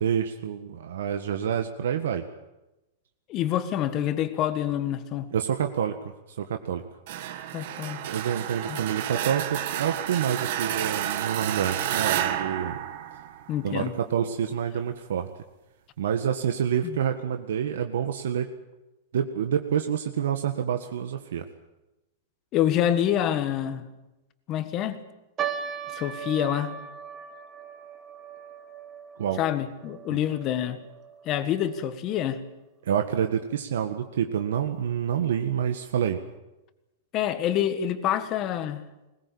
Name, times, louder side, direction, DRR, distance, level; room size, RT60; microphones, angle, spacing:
voice 1, 0.0-2.2 5.3-5.9 6.4-6.8 8.1-12.8 13.6-15.3 16.0-18.5 19.1-21.5 29.2-29.4 30.1-30.2 32.8-36.2, right 8 dB, 80° right, 6 dB, 1.7 m, -27 dB
voice 2, 3.3-5.3 7.5-8.0 8.7-8.8 13.5-13.9 16.8-17.0 22.5-23.8 24.5-25.0 25.9-26.7 29.4-30.8 31.3-32.4 37.1-38.8, left 11 dB, 25° left, 10 dB, 1.6 m, -27 dB
sound 1, 7.1-13.8, right 11 dB, 45° right, 1.7 m, -30 dB
sound 2, 25.4-31.9 32.1-32.2 33.0-33.3 33.9-34.0 34.3-34.5, right 8 dB, 15° right, 1.3 m, -38 dB
21.0 x 20.5 x 8.7 m, 0.99 s
supercardioid pair, 175°, 0 cm